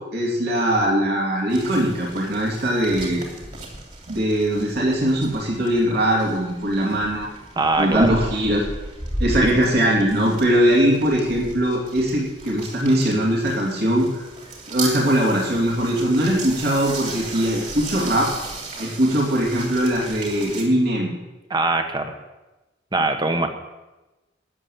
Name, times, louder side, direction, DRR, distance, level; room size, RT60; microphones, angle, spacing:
voice 1, 0.0-3.2 4.1-7.3 7.8-8.6 9.2-14.2 14.7-18.3 18.8-21.1, equal, 60° right, -3 dB, 2.9 m, -21 dB
sound 1, 1.5-20.6, right 2 dB, 40° right, 3.0 m, -35 dB
voice 2, 7.6-8.1 9.4-9.5 21.5-22.1 22.9-23.5, right 2 dB, 25° right, 6 dB, 1.2 m, -22 dB
13.0 x 7.4 x 8.4 m, 1.1 s
head